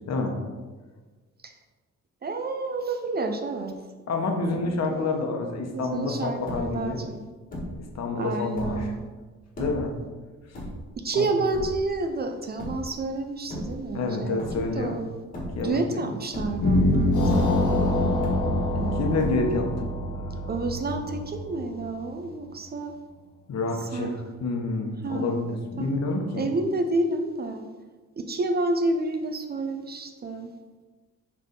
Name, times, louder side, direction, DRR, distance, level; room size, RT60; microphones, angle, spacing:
voice 1, 2.2-3.8 4.5-5.0 5.7-7.2 8.2-9.0 11.0-15.1 15.6-17.9 18.7-19.2 20.5-22.9 23.9-24.1 25.0-25.5 25.8-25.9 26.3-27.7 28.2-30.5, right 2 dB, 35° right, 6 dB, 0.4 m, -29 dB
voice 2, 4.1-7.0 7.8-8.9 9.6-9.9 10.5-10.6 11.1-11.3 13.9-15.0 15.4-16.1 18.9-19.9 23.5-26.5, left 3 dB, 60° left, 3 dB, 1.0 m, -28 dB
sound 1, 6.5-6.9 7.5-7.9 8.4-9.0 9.5-9.9 10.5-11.1 11.5-12.0 12.6-13.0 13.4-14.1 14.4-14.9 15.3-15.9 16.2-16.9 17.3-17.8 18.2-18.8 19.2-19.7, equal, 30° left, 1.5 m, -36 dB
sound 2, 16.6-21.8, left 1 dB, 90° left, 1.4 m, -24 dB
6.6 x 3.4 x 5.2 m, 1.3 s
wide cardioid pair, 180°, 30 cm